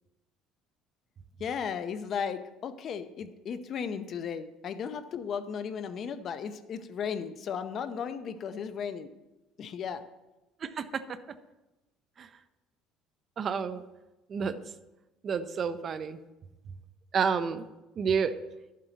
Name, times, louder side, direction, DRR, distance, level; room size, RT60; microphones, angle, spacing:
voice 1, 1.4-9.1 9.6-10.1, left 7 dB, 40° left, 11 dB, 0.7 m, -35 dB
voice 2, 10.6-11.0 12.2-12.3 13.4-13.8 14.3-14.6 15.2-16.2 17.1-17.6 18.0-18.3, right 6 dB, 30° right, 11 dB, 0.5 m, -29 dB
11.5 x 7.5 x 4.0 m, 1.0 s
cardioid pair, 150°, 0 cm